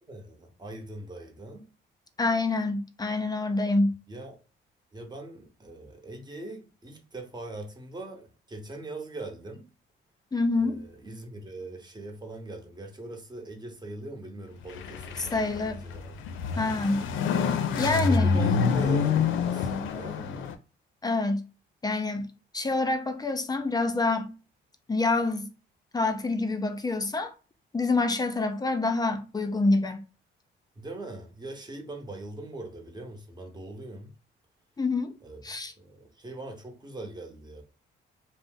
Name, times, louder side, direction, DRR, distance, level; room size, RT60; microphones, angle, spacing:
voice 1, 0.1-1.7 4.1-4.4 4.9-9.7 10.5-16.2 17.4-17.6 17.9-20.5 30.8-34.1 35.2-35.4 35.8-37.6, right 2 dB, 20° right, 0.8 m, -41 dB
voice 2, 2.2-4.0 10.3-10.8 15.2-15.8 16.6-17.1 17.8-18.4 21.0-21.5 21.8-24.3 24.9-25.5 25.9-27.3 27.7-30.0 34.8-35.1 35.4-35.7, left 3 dB, 20° left, 0.4 m, -27 dB
sound 1, 14.6-20.6, left 5 dB, 80° left, 0.4 m, -27 dB
2.5 x 2.0 x 3.6 m
cardioid pair, 90°, 20 cm